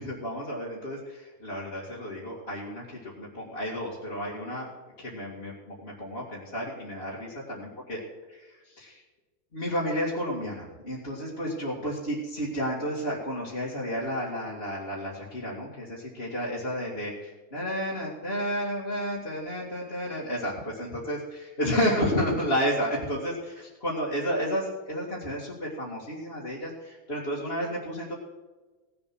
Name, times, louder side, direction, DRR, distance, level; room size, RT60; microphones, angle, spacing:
voice 1, 0.0-4.7 5.0-8.0 8.3-8.5 8.7-9.0 9.5-28.1, equal, 40° left, -6 dB, 2.6 m, -31 dB
18.0 x 7.3 x 6.1 m, 1.3 s
omnidirectional pair, 1.6 m